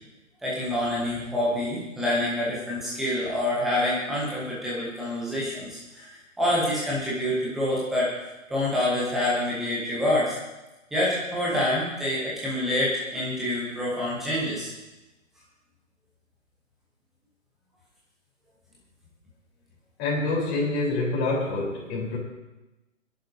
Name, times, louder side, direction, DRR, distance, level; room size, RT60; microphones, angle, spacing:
voice 1, 0.4-8.1 8.5-10.4 10.9-14.7, left 1 dB, ahead, -7 dB, 0.4 m, -27 dB
voice 2, 20.0-22.2, left 2 dB, 25° left, -3 dB, 3.7 m, -26 dB
24.5 x 10.5 x 2.7 m, 1.0 s
figure-of-eight pair, 135°, 40 cm